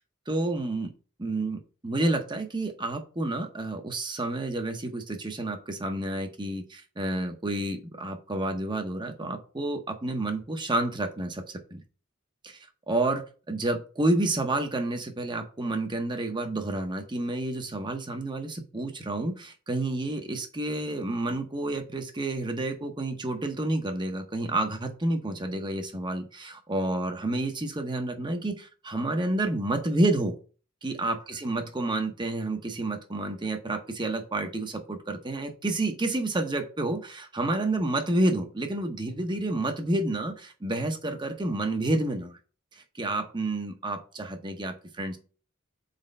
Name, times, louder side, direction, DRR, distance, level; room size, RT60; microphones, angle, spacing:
voice 1, 0.3-0.9 1.2-11.4 11.7-11.8 12.4-12.6 12.9-30.4 30.8-42.4 42.7-45.2, right 2 dB, 20° right, 5 dB, 0.8 m, -29 dB
4.3 x 4.1 x 5.3 m, 0.37 s
head